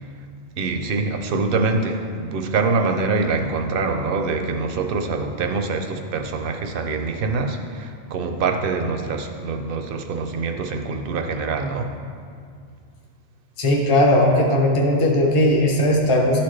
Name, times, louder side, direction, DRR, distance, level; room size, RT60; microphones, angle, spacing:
voice 1, 0.6-11.9, right 4 dB, 60° right, 5 dB, 0.8 m, -24 dB
voice 2, 13.6-16.4, left 1 dB, 35° left, -1 dB, 0.8 m, -18 dB
11.5 x 4.3 x 3.2 m, 2.2 s
omnidirectional pair, 1.1 m